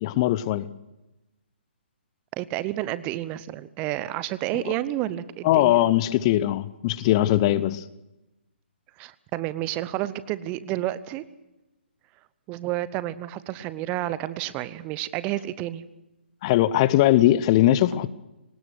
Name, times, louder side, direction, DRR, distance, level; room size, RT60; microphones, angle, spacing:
voice 1, 0.0-0.7 5.4-7.8 16.4-18.1, left 14 dB, 30° left, 0.7 m, -20 dB
voice 2, 2.3-5.8 9.0-11.2 12.5-15.8, right 15 dB, 20° right, 0.8 m, -30 dB
23.0 x 19.5 x 6.4 m
figure-of-eight pair, 135°, 6 cm